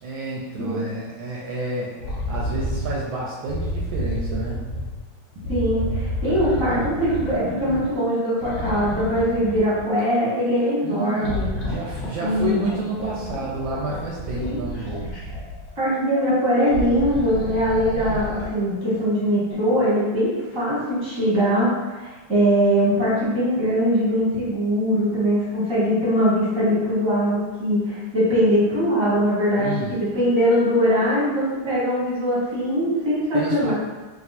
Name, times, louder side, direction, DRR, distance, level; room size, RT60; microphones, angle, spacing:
voice 1, 0.0-2.0 2.3-4.6 7.6-7.9 10.8-15.0 17.9-18.3 29.6-29.9 33.3-33.7, right 3 dB, 75° right, -4 dB, 1.3 m, -30 dB
sound 1, 2.0-3.0 3.5-5.0 5.4-8.0 8.4-10.0 11.2-15.7 16.6-18.6 19.5-19.6, left 1 dB, 55° left, 1.2 m, -30 dB
voice 2, 5.5-11.5 12.2-12.6 14.4-14.6 15.8-33.7, equal, 15° right, -8 dB, 1.1 m, -21 dB
3.5 x 2.9 x 4.1 m, 1.2 s
omnidirectional pair, 2.4 m